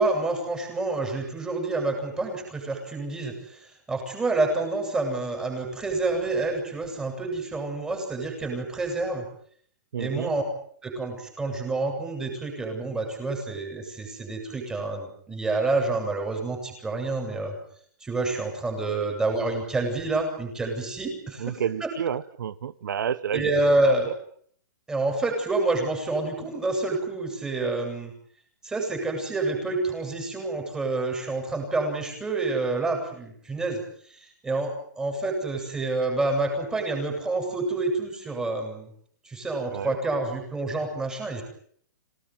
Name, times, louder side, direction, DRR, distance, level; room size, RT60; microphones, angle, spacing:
voice 1, 0.0-9.2 10.0-10.4 10.8-17.5 18.0-21.9 23.3-24.1 24.9-28.1 28.6-33.8 34.1-38.9 39.2-41.4, right 2 dB, 5° right, 2 dB, 7.6 m, -28 dB
voice 2, 9.9-10.3 18.9-19.1 21.4-23.5 39.7-40.0, right 8 dB, 75° right, 16 dB, 1.2 m, -30 dB
27.0 x 18.5 x 9.3 m, 0.62 s
hypercardioid pair, 165°, 10 cm